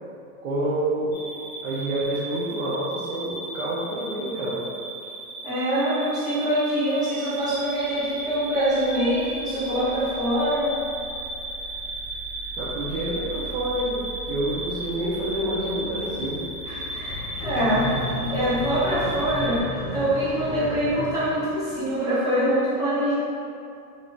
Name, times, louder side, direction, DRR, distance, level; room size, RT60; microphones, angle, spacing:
voice 1, 0.4-1.2 1.6-4.6 12.5-16.4, right 1 dB, 40° right, -9 dB, 0.5 m, -28 dB
sound 1, 1.1-19.6, right 2 dB, 55° left, 0.7 m, -35 dB
voice 2, 5.4-10.7 16.6-19.6 19.9-23.1, equal, 10° right, -12 dB, 0.8 m, -24 dB
sound 2, 15.9-16.3 17.0-22.0, equal, 35° left, 0.9 m, -34 dB
2.9 x 2.6 x 3.1 m, 2.5 s
supercardioid pair, 150°, 44 cm